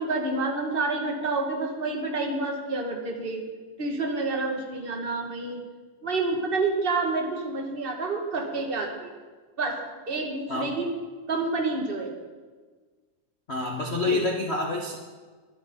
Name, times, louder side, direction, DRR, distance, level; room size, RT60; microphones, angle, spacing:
voice 1, 0.0-3.4 3.8-5.6 6.0-9.1 9.6-9.8 10.1-10.9 11.3-12.1 14.0-14.3, right 3 dB, 25° right, 2 dB, 1.5 m, -28 dB
voice 2, 13.5-14.9, left 3 dB, 50° left, 0 dB, 0.7 m, -27 dB
23.0 x 12.0 x 4.0 m, 1.4 s
omnidirectional pair, 3.6 m